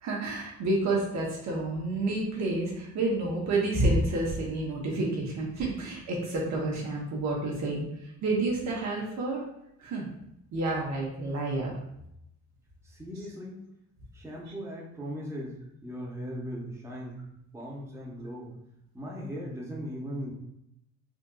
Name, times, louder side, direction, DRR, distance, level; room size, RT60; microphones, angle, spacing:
voice 1, 0.0-7.9 8.2-9.4 9.8-10.1 10.5-11.8, right 2 dB, 65° right, -3 dB, 0.9 m, -29 dB
voice 2, 12.8-13.6 14.1-18.5 18.9-20.3, equal, 10° right, -5 dB, 1.0 m, -38 dB
3.7 x 2.6 x 2.3 m, 0.80 s
cardioid pair, 90°, 30 cm